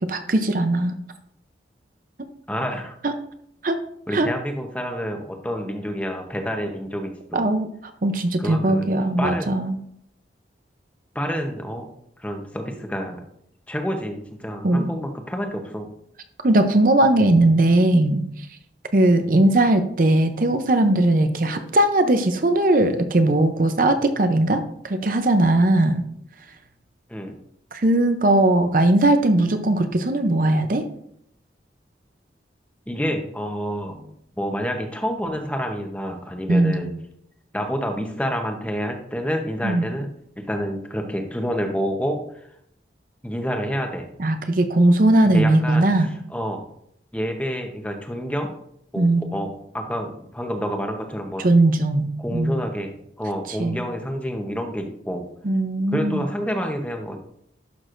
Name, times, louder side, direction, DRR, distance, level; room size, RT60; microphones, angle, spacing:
voice 1, 0.1-1.0 3.0-3.1 3.6-3.8 4.1-4.3 7.3-7.7 8.0-9.8 14.6-14.9 16.4-18.2 18.9-26.0 27.7-30.8 36.5-36.8 39.6-39.8 44.2-46.1 49.0-49.3 51.4-52.6 53.6-53.8 55.4-56.2, right 1 dB, 50° right, 8 dB, 0.6 m, -19 dB
voice 2, 2.5-2.9 4.1-7.5 8.4-8.9 9.2-9.5 11.1-11.9 12.2-13.2 13.7-15.9 19.2-19.3 27.1-27.3 32.9-36.9 37.5-40.1 40.4-42.5 43.2-44.0 45.2-46.6 47.1-48.5 48.9-51.4 52.2-52.9 53.2-55.2 55.9-57.2, equal, 5° left, 4 dB, 0.8 m, -28 dB
11.0 x 6.1 x 2.5 m, 0.70 s
head